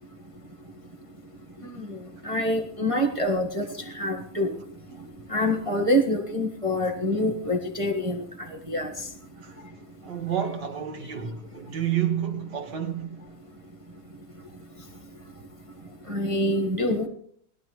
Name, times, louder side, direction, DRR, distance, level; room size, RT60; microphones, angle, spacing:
voice 1, 2.2-3.7 3.9-4.5 5.3-8.2 8.7-8.9 16.1-17.1, left 1 dB, 25° right, 0.8 m, -25 dB
voice 2, 10.0-13.2, right 9 dB, 60° right, 2.1 m, -30 dB
19.5 x 12.5 x 3.1 m
omnidirectional pair, 2.1 m